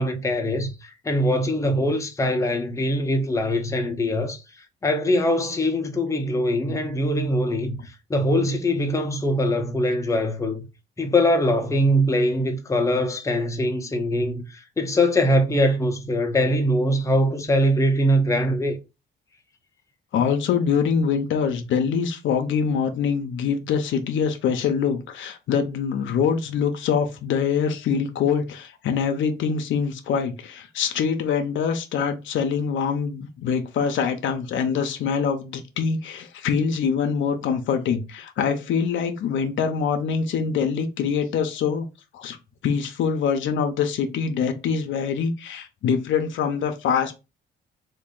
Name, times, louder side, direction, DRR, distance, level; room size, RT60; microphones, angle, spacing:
voice 1, 0.0-4.4 4.8-7.8 8.1-10.6 11.0-18.8, equal, 15° left, 0.6 m, -22 dB
voice 2, 20.1-41.9 42.1-42.4 42.6-47.1, left 6 dB, 75° left, 0.6 m, -24 dB
3.0 x 2.6 x 3.6 m
cardioid pair, 90°, 20 cm